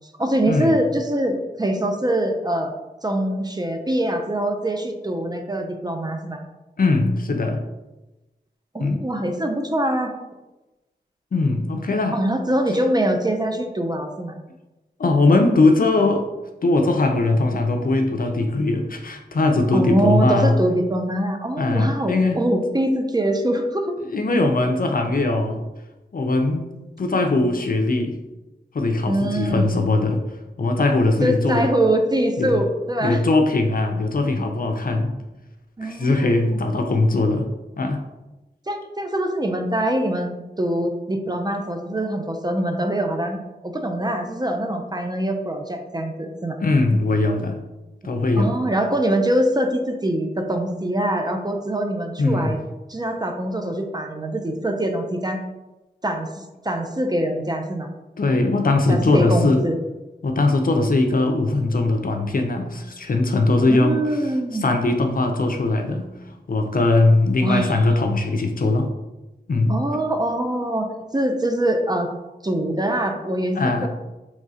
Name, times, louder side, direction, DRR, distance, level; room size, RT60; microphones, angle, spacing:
voice 1, 0.2-2.7 3.0-6.4 8.7-10.1 12.1-14.4 19.7-24.0 29.1-29.8 31.2-33.2 35.8-36.6 38.7-46.6 48.4-52.6 52.9-55.4 56.0-57.9 58.9-59.8 63.7-64.7 67.4-67.8 69.7-72.1 72.4-73.9, right 1 dB, 20° right, 4 dB, 0.5 m, -23 dB
voice 2, 6.8-7.6 8.8-9.0 11.3-12.2 15.0-16.3 16.6-20.5 21.6-22.4 24.1-25.6 26.1-26.7 27.0-28.2 28.7-30.2 30.6-31.7 32.4-32.6 33.0-35.1 35.8-37.5 37.8-38.0 46.6-47.6 48.0-48.7 52.2-52.6 58.2-59.6 60.2-64.0 64.5-66.1 66.5-68.9 69.5-69.7 73.6-73.9, left 2 dB, 50° left, 4 dB, 0.5 m, -20 dB
3.6 x 3.1 x 2.7 m, 1.0 s
cardioid pair, 40°, 18 cm